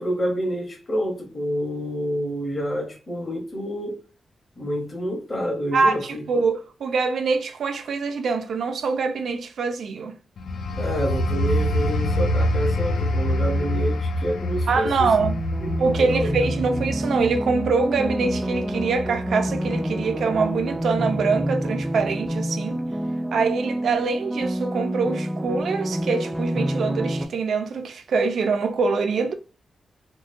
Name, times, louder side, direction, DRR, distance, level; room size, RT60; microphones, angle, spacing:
voice 1, 0.0-4.0 4.6-6.4 10.8-15.1 15.6-16.3, equal, 25° left, 0.8 m, -28 dB
voice 2, 5.7-10.1 14.7-15.4 15.8-22.8 23.3-29.3, right 4 dB, 65° right, 0.5 m, -24 dB
sound 1, 10.4-20.7 21.1-21.4, left 1 dB, 75° left, 0.4 m, -26 dB
sound 2, 15.2-27.2, equal, 10° right, 0.3 m, -28 dB
3.8 x 2.2 x 2.5 m
wide cardioid pair, 175°, 0 cm